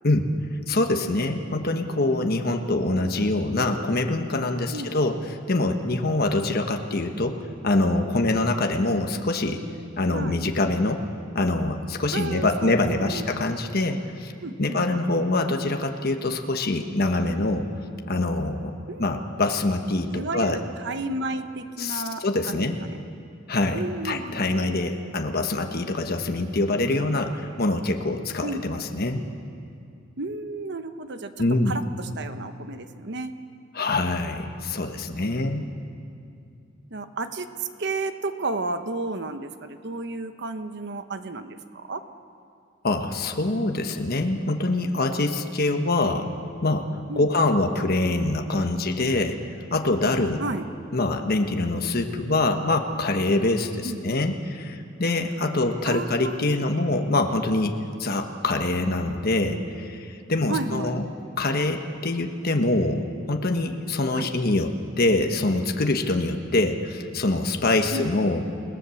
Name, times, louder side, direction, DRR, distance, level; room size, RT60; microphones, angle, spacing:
voice 1, 0.7-9.6 10.0-11.1 11.3-14.3 14.6-17.7 18.1-18.7 19.0-20.6 21.8-22.8 23.5-29.2 31.4-31.8 33.7-35.7 42.8-46.3 46.6-50.4 50.9-61.1 61.4-68.4, left 2 dB, 50° left, 4 dB, 1.2 m, -25 dB
voice 2, 4.7-5.2 10.1-10.4 12.1-13.3 14.4-14.8 18.9-19.1 20.1-22.9 23.7-24.4 28.4-28.9 30.2-33.3 36.9-42.0 47.1-47.3 50.4-50.6 53.8-54.0 55.9-56.7 60.5-61.0 64.1-64.3 67.9-68.1, right 2 dB, 55° right, 9 dB, 1.1 m, -32 dB
29.0 x 18.5 x 7.1 m, 2.5 s
head